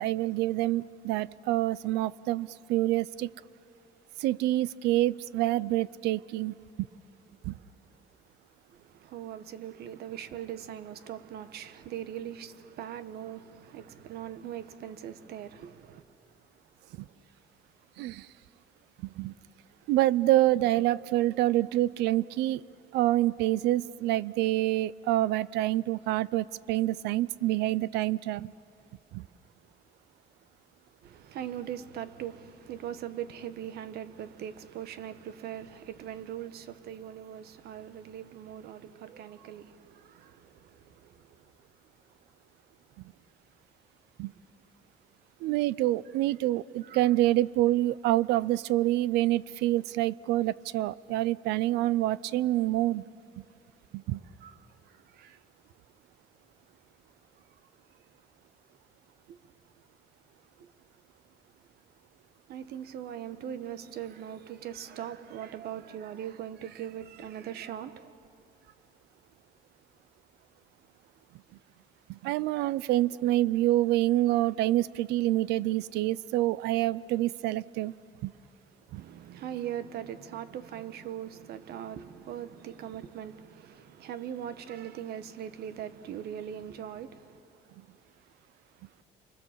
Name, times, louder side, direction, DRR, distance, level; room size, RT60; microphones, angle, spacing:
voice 1, 0.0-3.3 4.2-6.5 7.4-7.6 18.0-18.3 19.2-19.3 19.9-22.6 22.9-28.5 29.1-29.2 44.2-44.3 45.4-53.0 53.9-54.2 72.1-77.9 78.2-78.3 78.9-79.0, right 15 dB, 90° right, 0.6 m, -27 dB
voice 2, 8.7-16.0 31.0-41.4 46.8-47.1 54.4-54.6 55.1-55.4 59.3-59.4 60.6-60.7 62.5-68.1 78.9-87.4, right 10 dB, 70° right, 1.3 m, -40 dB
30.0 x 24.5 x 7.4 m
cardioid pair, 110°, 17 cm